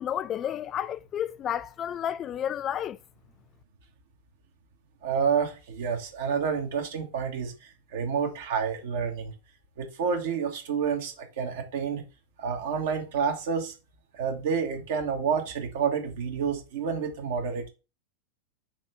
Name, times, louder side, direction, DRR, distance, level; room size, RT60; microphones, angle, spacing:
voice 1, 0.0-3.0, left 10 dB, 30° left, 0.3 m, -31 dB
voice 2, 5.0-7.5 7.9-9.3 9.8-12.0 12.4-13.7 14.1-17.7, right 6 dB, 55° right, 1.5 m, -29 dB
6.0 x 3.2 x 5.5 m
figure-of-eight pair, 90°, 0 cm